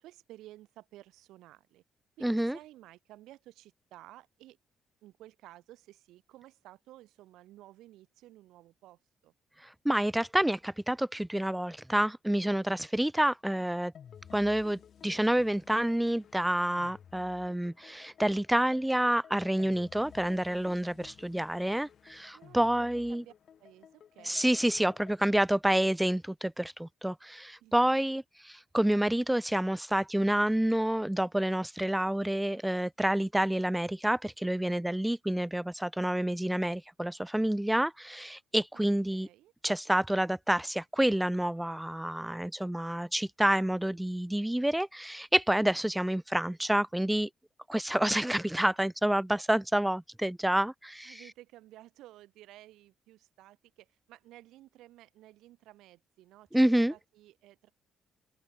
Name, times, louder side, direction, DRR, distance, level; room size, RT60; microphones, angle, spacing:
voice 1, 0.0-1.8 2.2-4.6 5.0-9.3 13.5-13.8 22.3-23.3 23.6-24.5 27.6-27.7 38.7-39.5 51.0-56.6 56.9-57.7, right 15 dB, 90° right, 7.7 m, -54 dB
voice 2, 2.2-2.6 9.8-13.9 14.3-23.2 24.2-39.3 39.6-47.3 47.7-51.2 56.5-56.9, right 1 dB, 5° right, 0.6 m, -28 dB
sound 1, 13.9-25.2, left 8 dB, 55° left, 7.1 m, -55 dB
open air
cardioid pair, 90°, 0 cm